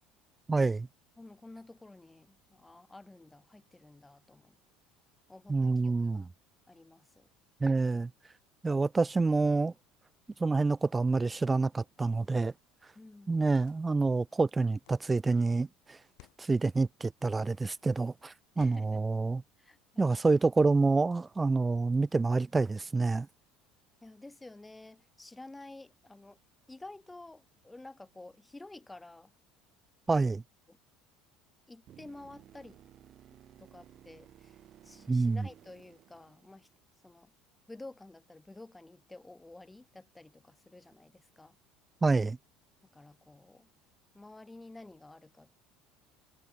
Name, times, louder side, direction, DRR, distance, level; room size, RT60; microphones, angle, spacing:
voice 1, 0.5-0.9 5.5-6.3 7.6-8.1 8.6-9.7 10.4-12.5 13.3-16.0 16.4-19.4 20.0-23.3 30.1-30.4 35.1-35.4 42.0-42.4, right 3 dB, 15° right, 0.3 m, -27 dB
voice 2, 1.2-4.6 5.3-6.3 6.7-7.3 12.9-13.3 18.5-19.0 19.6-20.2 24.0-26.4 26.7-29.3 30.2-30.3 30.7-30.8 31.7-32.8 33.6-34.6 34.8-36.7 37.0-37.3 37.7-41.6 42.9-43.7 44.1-45.5, left 2 dB, 10° left, 0.8 m, -51 dB
sound 1, 13.4-14.0 14.8-15.2 16.0-16.5 17.3-17.7 18.5-19.1, left 33 dB, 75° left, 3.6 m, -59 dB
sound 2, 31.9-36.9 40.9-41.0, right 11 dB, 45° right, 3.2 m, -57 dB
supercardioid pair, 120°, 0 cm